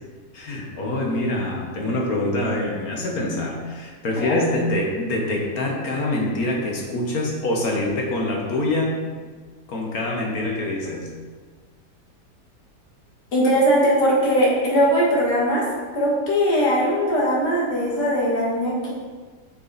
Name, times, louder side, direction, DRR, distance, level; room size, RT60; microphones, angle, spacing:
voice 1, 0.3-9.0 9.7-11.1, left 1 dB, 60° left, -1 dB, 1.8 m, -25 dB
voice 2, 13.3-15.6 15.9-18.9, equal, 85° left, -5 dB, 2.5 m, -20 dB
6.8 x 6.5 x 4.2 m, 1.5 s
omnidirectional pair, 1.8 m